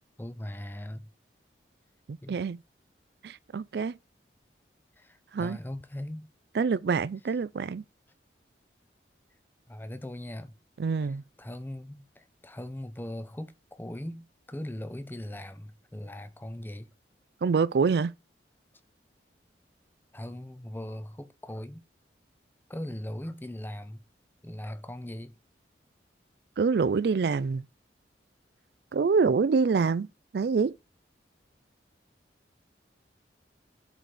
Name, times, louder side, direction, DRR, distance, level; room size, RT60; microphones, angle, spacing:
voice 1, 0.2-1.1 2.2-2.4 5.0-6.3 9.7-10.6 11.0-16.9 20.1-21.8 22.7-24.0 24.4-25.4, left 1 dB, 10° left, 0.5 m, -39 dB
voice 2, 2.3-2.6 3.2-3.9 5.3-5.6 6.6-7.8 10.8-11.2 17.4-18.1 26.6-27.6 28.9-30.1 30.3-30.7, right 5 dB, 60° right, 0.4 m, -25 dB
7.8 x 4.1 x 4.9 m
head